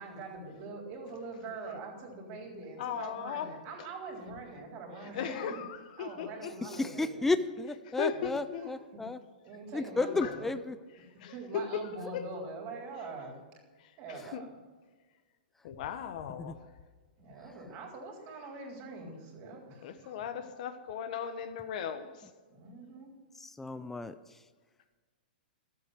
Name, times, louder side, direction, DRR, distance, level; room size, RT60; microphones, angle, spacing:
voice 1, 0.0-5.6 6.0-7.4 8.1-9.0 9.4-10.5 11.3-13.3 14.0-14.6 17.2-20.4 22.5-23.1, right 3 dB, 40° right, 3.8 m, -44 dB
voice 2, 2.8-3.5 5.1-6.5 8.0-8.7 10.1-10.4 11.2-11.8 12.1-12.2 13.8-14.4 15.6-16.5 19.8-22.3, left 8 dB, 50° left, 1.2 m, -37 dB
voice 3, 6.6-9.2 9.7-10.8 16.4-16.5 23.4-24.1, left 2 dB, 5° left, 0.4 m, -33 dB
12.5 x 8.3 x 6.4 m
hypercardioid pair, 145°, 5 cm